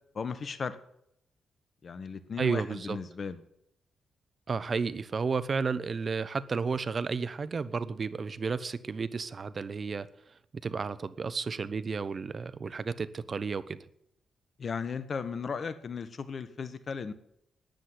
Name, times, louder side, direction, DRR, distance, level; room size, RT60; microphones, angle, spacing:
voice 1, 0.1-0.8 1.8-3.4 14.6-17.1, left 5 dB, 55° left, 13 dB, 1.3 m, -36 dB
voice 2, 2.4-3.0 4.5-10.1 10.6-13.8, right 5 dB, 50° right, 16 dB, 0.9 m, -32 dB
12.0 x 10.0 x 7.7 m, 0.76 s
hypercardioid pair, 40°, 0 cm